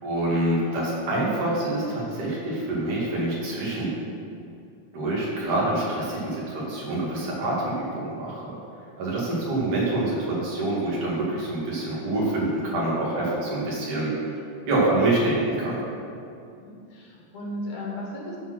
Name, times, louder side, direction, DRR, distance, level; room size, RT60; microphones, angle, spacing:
voice 1, 0.0-3.9 4.9-8.6 9.0-14.1 14.7-15.8, right 2 dB, 85° right, -6 dB, 3.7 m, -26 dB
voice 2, 16.6-18.4, left 1 dB, 65° left, -2 dB, 2.6 m, -35 dB
12.5 x 4.4 x 6.2 m, 2.5 s
omnidirectional pair, 3.5 m